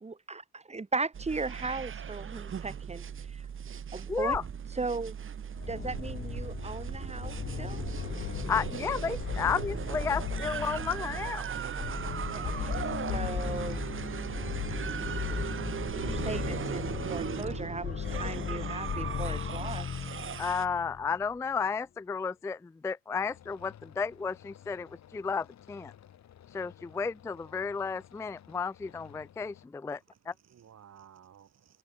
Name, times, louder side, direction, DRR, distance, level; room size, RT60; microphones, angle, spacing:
voice 1, 0.0-3.5 3.9-4.4 4.7-5.1 5.7-7.8 12.3-13.8 15.9-19.9, right 3 dB, 20° right, 2.5 m, -37 dB
sound 1, 1.1-20.7, right 7 dB, 40° right, 1.4 m, -38 dB
voice 2, 4.1-4.4 8.5-11.5 20.4-25.9 26.5-30.0 30.3-30.4, left 5 dB, 10° left, 0.3 m, -33 dB
sound 2, 5.5-21.2, left 8 dB, 40° left, 0.7 m, -37 dB
sound 3, 23.1-29.7, left 10 dB, 65° left, 2.8 m, -55 dB
voice 3, 29.9-31.8, right 9 dB, 60° right, 6.6 m, -56 dB
cardioid pair, 90°, 30 cm